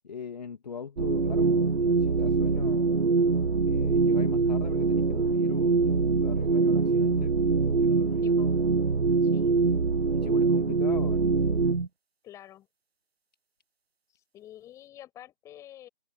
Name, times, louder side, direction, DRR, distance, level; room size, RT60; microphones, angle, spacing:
voice 1, 0.0-3.0 3.7-7.4 7.8-8.2 10.1-11.3, left 6 dB, 45° left, 2.0 m, -40 dB
sound 1, 1.0-11.9, right 4 dB, 80° right, 0.8 m, -24 dB
voice 2, 8.2-8.6 9.2-9.6 12.2-12.7 14.1-15.9, left 12 dB, 10° left, 7.2 m, -48 dB
figure-of-eight pair, 150°, 30 cm